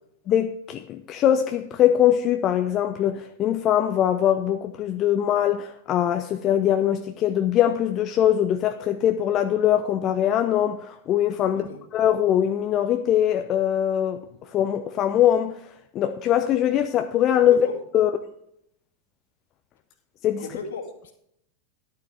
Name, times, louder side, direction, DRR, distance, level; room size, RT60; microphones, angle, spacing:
voice 1, 0.3-14.2 14.5-15.6 15.9-17.6 17.9-18.1 20.2-20.5, left 10 dB, 35° left, 0.6 m, -22 dB
voice 2, 11.4-11.8 17.4-17.8 20.4-21.1, left 5 dB, 60° left, 2.1 m, -35 dB
13.0 x 11.5 x 3.4 m
figure-of-eight pair, 90°, 0 cm